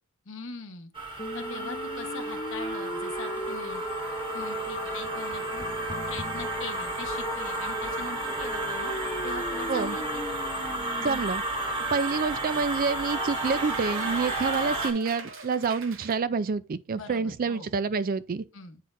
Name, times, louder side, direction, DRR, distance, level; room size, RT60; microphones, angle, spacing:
voice 1, 0.2-0.9 1.3-3.8 4.3-5.6 6.1-8.9 9.2-10.2 16.9-17.7 18.5-18.8, left 4 dB, 60° left, 1.0 m, -41 dB
sound 1, 1.0-14.9, right 1 dB, 25° right, 1.2 m, -32 dB
sound 2, 1.2-11.2, right 1 dB, 25° left, 0.5 m, -37 dB
Cheering / Applause, 10.9-16.2, right 5 dB, 65° right, 0.9 m, -40 dB
voice 2, 11.0-11.4 11.9-18.4, right 5 dB, 40° right, 0.4 m, -28 dB
9.2 x 4.1 x 2.6 m
head